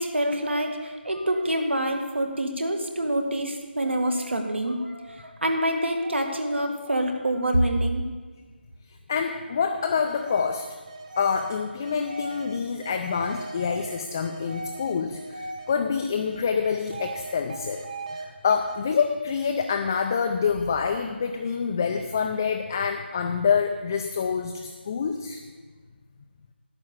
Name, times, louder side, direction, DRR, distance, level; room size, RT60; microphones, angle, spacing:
voice 1, 0.0-8.0, right 1 dB, 75° right, 4 dB, 2.1 m, -26 dB
voice 2, 9.1-10.7 11.2-17.8 18.1-25.4, left 6 dB, 15° left, 4 dB, 0.4 m, -26 dB
sound 1, 10.1-15.8 16.1-18.2 18.5-18.8, right 2 dB, 35° right, 1.6 m, -38 dB
11.0 x 7.0 x 8.5 m, 1.4 s
figure-of-eight pair, 165°, 6 cm